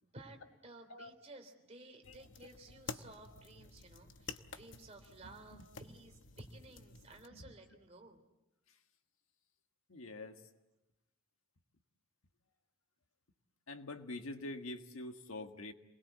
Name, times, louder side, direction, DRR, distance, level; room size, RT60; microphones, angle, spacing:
voice 1, 0.0-8.2, right 2 dB, 30° right, 4 dB, 3.3 m, -55 dB
sound 1, 2.0-7.3, left 4 dB, 60° left, 1.0 m, -51 dB
voice 2, 9.9-10.4 13.7-15.7, left 2 dB, 85° left, 6 dB, 1.7 m, -45 dB
27.5 x 21.0 x 8.2 m, 1.0 s
head